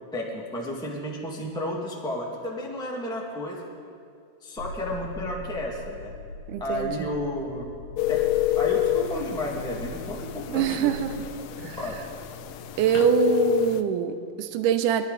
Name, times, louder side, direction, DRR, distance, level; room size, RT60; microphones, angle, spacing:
voice 1, 0.1-3.6 4.4-6.1 6.6-7.7 8.1-8.2 8.5-10.9 11.2-11.3 11.6-11.9, left 1 dB, 5° left, -2 dB, 0.4 m, -32 dB
sound 1, 4.6-13.1, left 1 dB, 70° left, 1.9 m, -41 dB
voice 2, 6.5-7.1 10.5-11.1 11.6-11.8 12.8-15.0, right 10 dB, 75° right, 8 dB, 2.1 m, -24 dB
sound 2, 8.0-13.8, left 14 dB, 85° left, 2.3 m, -28 dB
23.0 x 12.5 x 4.0 m, 2.4 s
omnidirectional pair, 4.1 m